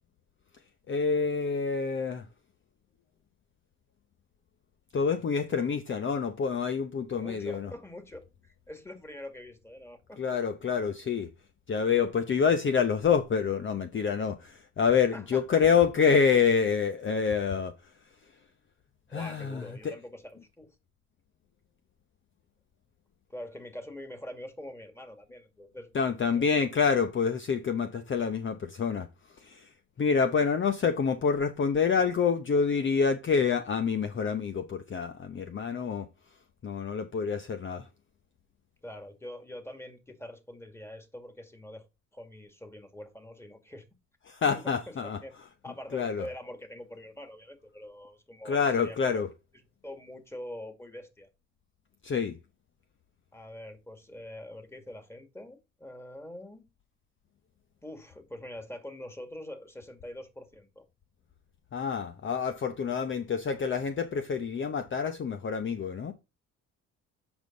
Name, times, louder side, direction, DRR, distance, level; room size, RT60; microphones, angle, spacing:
voice 1, 0.9-2.2 4.9-7.7 10.2-11.3 11.7-17.7 19.1-19.9 25.9-29.1 29.4-29.7 30.0-36.1 36.6-37.9 44.3-45.2 45.9-46.2 48.4-49.3 52.0-52.4 61.7-66.1, left 6 dB, 40° left, 0.8 m, -27 dB
voice 2, 7.2-10.2 15.1-15.6 19.1-20.8 23.3-26.5 38.8-41.9 42.1-43.9 44.5-45.3 45.6-49.2 49.8-51.3 53.3-56.7 57.8-60.9, left 1 dB, 10° left, 2.1 m, -44 dB
8.0 x 5.4 x 3.9 m
cardioid pair, 90°, 30 cm